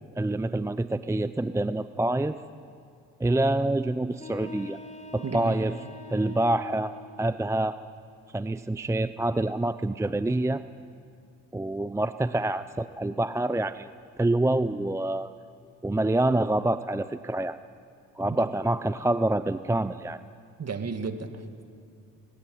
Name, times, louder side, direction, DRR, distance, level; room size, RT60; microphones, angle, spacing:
voice 1, 0.2-2.4 3.2-4.8 5.1-5.8 6.1-6.9 7.2-7.8 8.3-10.6 11.5-13.9 14.2-15.3 15.8-17.6 18.2-20.2, right 2 dB, 10° right, 13 dB, 0.6 m, -26 dB
sound 1, 4.1-7.1, left 4 dB, 20° left, 4.1 m, -44 dB
voice 2, 5.2-5.6 18.3-18.5 20.6-21.6, right 4 dB, 45° right, 8 dB, 2.1 m, -34 dB
20.0 x 18.0 x 9.5 m, 2.4 s
supercardioid pair, 65°, 37 cm